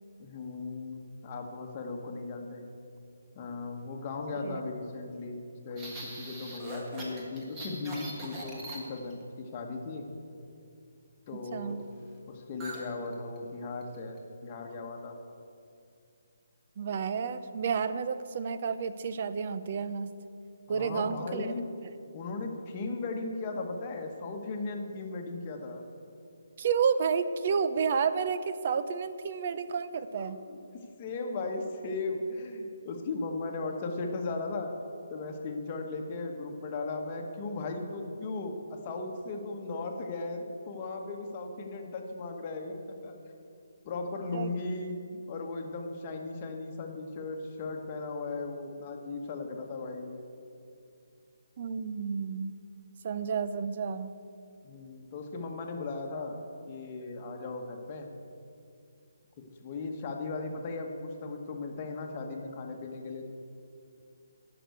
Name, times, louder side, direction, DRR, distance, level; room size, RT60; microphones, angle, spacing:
voice 1, 0.2-2.6 3.3-5.4 5.6-10.1 11.3-11.9 12.3-15.2 20.7-21.6 22.1-25.8 29.9-30.6 31.0-34.7 35.1-42.8 43.0-43.1 43.8-45.0 45.3-50.2 54.6-56.4 56.7-58.1 59.6-63.3, left 3 dB, 25° left, 2 dB, 1.2 m, -37 dB
sound 1, 5.8-9.2 12.6-12.9 13.1-13.4 13.8-14.2, right 1 dB, 15° right, 1.4 m, -41 dB
voice 2, 11.3-11.8 16.8-20.1 20.7-21.5 26.6-30.4 44.3-44.6 51.6-52.6 53.0-54.1, right 6 dB, 40° right, 12 dB, 0.5 m, -31 dB
11.0 x 6.0 x 8.2 m, 2.5 s
hypercardioid pair, 165°, 0 cm